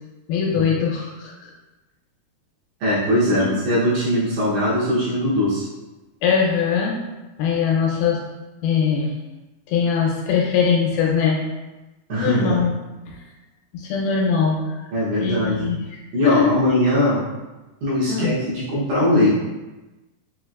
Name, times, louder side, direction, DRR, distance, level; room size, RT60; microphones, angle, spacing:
voice 1, 0.3-1.5 3.3-3.5 6.2-7.0 7.4-8.2 8.6-9.1 9.7-11.4 12.1-12.7 13.1-13.2 13.7-14.7 15.2-15.9 16.2-16.5 18.1-18.3, left 6 dB, 85° left, -1 dB, 2.6 m, -21 dB
voice 2, 2.8-5.7 12.1-12.6 14.9-15.7 16.1-17.2 17.8-19.3, left 1 dB, 70° right, -9 dB, 2.1 m, -20 dB
5.7 x 2.9 x 2.4 m, 1.1 s
omnidirectional pair, 4.4 m